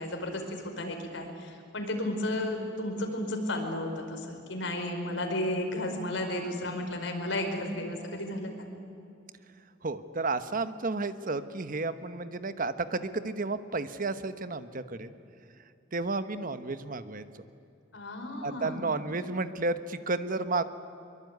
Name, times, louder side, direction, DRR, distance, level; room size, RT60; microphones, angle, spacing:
voice 1, 0.0-8.7 17.9-18.8, left 1 dB, 80° left, 4 dB, 4.8 m, -33 dB
voice 2, 9.8-15.1 15.9-17.2 18.4-20.6, right 3 dB, 50° right, 11 dB, 1.1 m, -32 dB
24.0 x 23.5 x 9.4 m, 2.6 s
head